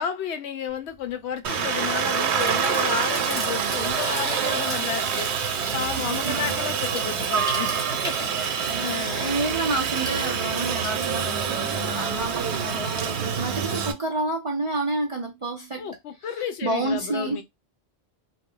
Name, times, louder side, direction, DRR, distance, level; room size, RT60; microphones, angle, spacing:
voice 1, 0.0-9.4 15.8-17.4, left 7 dB, 80° left, 0.9 m, -32 dB
Sink (filling or washing), 0.7-1.1 1.8-12.7, right 1 dB, 5° right, 0.6 m, -38 dB
Aircraft, 1.4-13.9, right 7 dB, 85° right, 0.8 m, -26 dB
voice 2, 6.0-6.6 8.6-15.9 16.6-17.4, right 2 dB, 45° right, 0.4 m, -29 dB
2.3 x 2.0 x 3.6 m
omnidirectional pair, 1.1 m